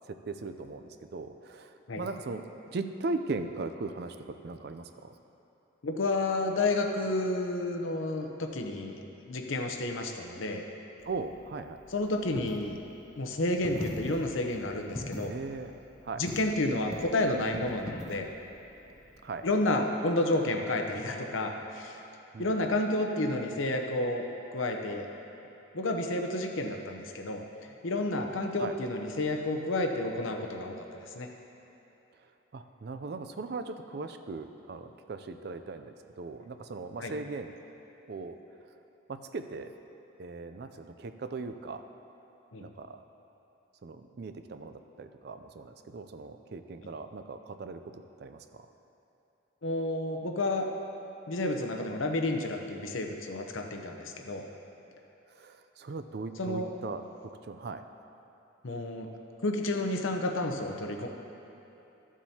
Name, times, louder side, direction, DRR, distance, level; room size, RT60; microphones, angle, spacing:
voice 1, 0.1-4.2 4.4-5.2 11.1-11.8 15.1-16.2 19.2-19.5 22.3-22.7 28.2-28.3 28.6-28.7 32.5-37.5 38.1-38.4 39.1-39.7 40.2-41.9 42.6-43.0 43.8-48.7 55.3-57.0 57.4-57.8, right 3 dB, 50° right, 9 dB, 0.4 m, -39 dB
voice 2, 5.8-10.7 11.9-12.8 13.2-15.3 16.1-18.3 19.4-22.0 22.4-24.2 24.5-25.1 25.7-27.4 27.8-31.3 37.0-37.1 42.5-42.6 49.6-50.7 51.3-54.4 56.4-56.7 58.6-59.1 59.4-61.1, left 2 dB, 80° left, 3 dB, 0.8 m, -30 dB
Coin (dropping), 11.0-19.5, left 1 dB, 15° left, 0.5 m, -43 dB
13.5 x 7.3 x 2.8 m, 3.0 s
head